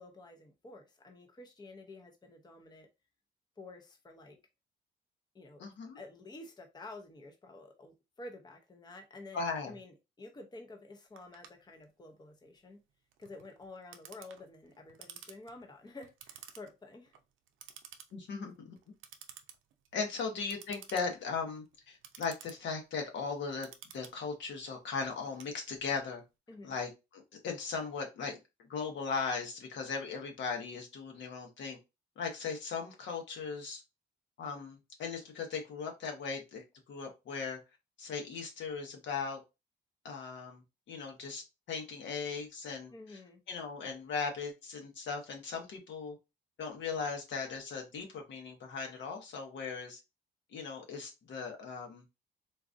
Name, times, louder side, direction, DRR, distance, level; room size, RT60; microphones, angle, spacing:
voice 1, 0.0-2.9 3.6-4.4 5.3-5.6 5.9-12.8 13.2-17.1 26.5-26.7 42.9-43.4, left 2 dB, 20° left, 0.7 m, -50 dB
voice 2, 5.6-6.0 9.3-9.7 18.1-18.8 19.9-23.7 23.9-26.2 26.6-28.4 28.7-31.8 32.2-33.8 34.4-37.6 38.0-39.4 40.0-40.6 40.9-43.2 43.5-46.2 46.6-50.0 50.5-52.0, left 5 dB, 65° left, 1.1 m, -38 dB
Clock, 11.2-26.1, right 9 dB, 80° right, 0.5 m, -54 dB
3.8 x 2.5 x 2.5 m
cardioid pair, 90°, 20 cm